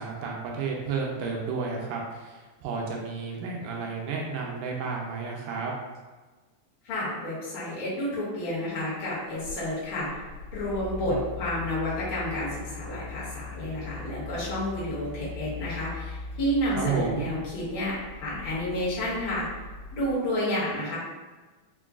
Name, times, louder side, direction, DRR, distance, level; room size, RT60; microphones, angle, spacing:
voice 1, 0.0-5.7 16.8-17.3, right 5 dB, 85° right, -1 dB, 2.0 m, -32 dB
voice 2, 6.8-10.2 10.5-19.5 19.9-21.0, left 1 dB, 55° left, -9 dB, 1.6 m, -30 dB
Mechanical fan, 9.1-20.2, left 4 dB, 85° left, 2.2 m, -40 dB
5.3 x 2.2 x 2.4 m, 1.3 s
omnidirectional pair, 3.6 m